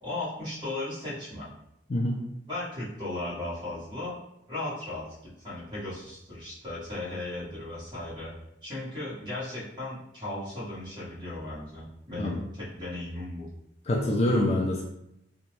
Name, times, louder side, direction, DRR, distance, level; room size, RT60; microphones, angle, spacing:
voice 1, 0.0-1.5 2.5-4.2 4.5-8.3 8.6-13.5, left 2 dB, 25° right, -10 dB, 1.4 m, -36 dB
voice 2, 1.9-2.2 12.2-12.3 13.9-14.8, left 1 dB, 35° left, -1 dB, 0.4 m, -25 dB
2.9 x 2.3 x 3.0 m, 0.82 s
head